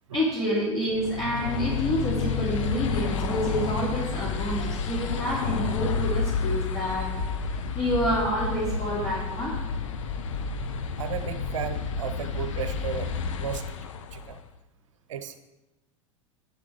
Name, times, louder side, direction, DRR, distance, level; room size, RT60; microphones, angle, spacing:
voice 1, 0.1-7.1 7.4-9.5, equal, 25° left, -6 dB, 3.1 m, -28 dB
sound 1, 0.9-14.4, left 5 dB, 65° left, 0.9 m, -30 dB
voice 2, 11.0-13.1 13.4-13.7 14.1-14.4 15.1-15.4, right 7 dB, 65° right, 9 dB, 0.8 m, -34 dB
10.5 x 7.0 x 4.9 m, 1.0 s
figure-of-eight pair, 85°, 17 cm